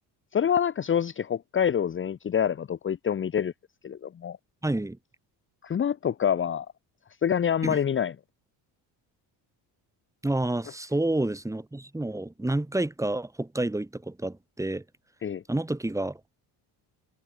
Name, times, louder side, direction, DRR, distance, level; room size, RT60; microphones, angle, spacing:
voice 1, 0.3-3.5 3.8-4.4 5.6-6.7 7.2-8.1 15.2-15.4, left 8 dB, 30° left, 1.1 m, -26 dB
voice 2, 4.6-5.0 7.6-7.8 10.2-14.8 15.5-16.2, right 2 dB, 5° right, 4.6 m, -29 dB
cardioid pair, 145°, 41 cm